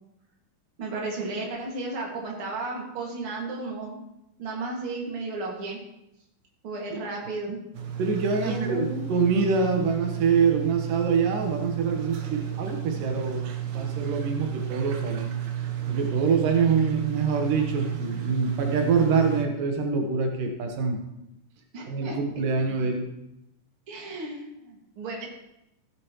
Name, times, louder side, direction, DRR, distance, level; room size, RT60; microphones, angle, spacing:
voice 1, 0.8-4.0 4.4-5.8 6.6-7.6 8.3-9.0 21.7-22.2 23.9-25.3, right 3 dB, 45° right, -2 dB, 2.8 m, -33 dB
sound 1, 7.7-19.5, right 11 dB, 70° right, 2.3 m, -32 dB
voice 2, 8.0-13.5 13.7-15.3 15.9-21.0 21.9-23.1, right 5 dB, 90° right, 3 dB, 3.0 m, -25 dB
15.0 x 9.1 x 3.1 m, 0.86 s
omnidirectional pair, 3.7 m